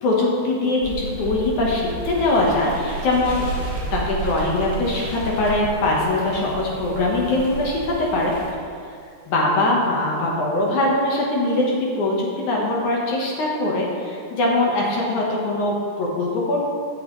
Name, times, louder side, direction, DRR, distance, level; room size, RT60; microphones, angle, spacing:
voice 1, 0.0-3.4 3.9-8.4 9.3-16.6, left 2 dB, 65° left, -3 dB, 1.9 m, -22 dB
sound 1, 0.8-8.5, right 3 dB, 45° right, 2.6 m, -32 dB
17.0 x 8.6 x 3.2 m, 2.3 s
omnidirectional pair, 5.2 m